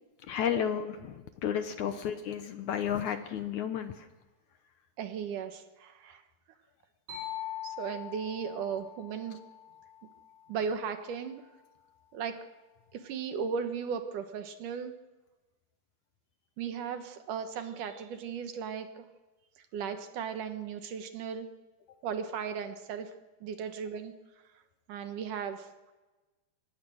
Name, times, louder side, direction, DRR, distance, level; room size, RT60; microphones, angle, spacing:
voice 1, 0.3-4.1, left 9 dB, 70° left, 9 dB, 2.0 m, -32 dB
voice 2, 5.0-6.2 7.6-9.4 10.5-11.4 12.1-12.4 12.9-14.9 16.6-19.1 19.7-21.5 22.0-23.1 23.4-24.1 24.9-25.7, right 7 dB, 65° right, 8 dB, 2.5 m, -36 dB
sound 1, 7.1-10.8, left 11 dB, 40° right, 9.3 m, -43 dB
24.0 x 18.5 x 6.4 m, 1.2 s
omnidirectional pair, 4.4 m